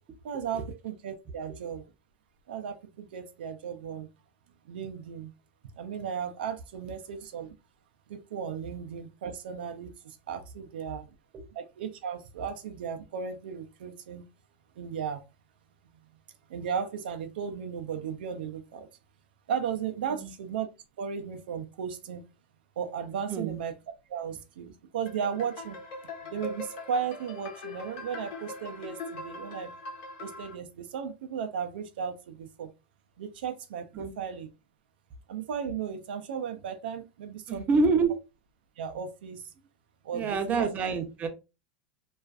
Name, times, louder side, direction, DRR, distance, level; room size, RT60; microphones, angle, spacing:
voice 1, 0.2-1.8 2.5-4.1 4.7-5.3 5.8-7.5 8.1-11.1 11.5-14.2 14.8-15.2 16.5-18.9 19.5-20.7 21.0-22.2 22.8-23.7 24.1-25.8 26.3-29.7 30.2-32.7 33.2-34.5 35.3-37.8 38.8-39.4 40.0-40.7, right 7 dB, 90° right, 0.4 m, -35 dB
sound 1, 25.1-30.5, left 2 dB, 70° left, 1.0 m, -41 dB
voice 2, 37.5-38.1 40.1-41.3, right 4 dB, 30° right, 0.6 m, -27 dB
2.4 x 2.3 x 2.3 m
supercardioid pair, 130°, 5 cm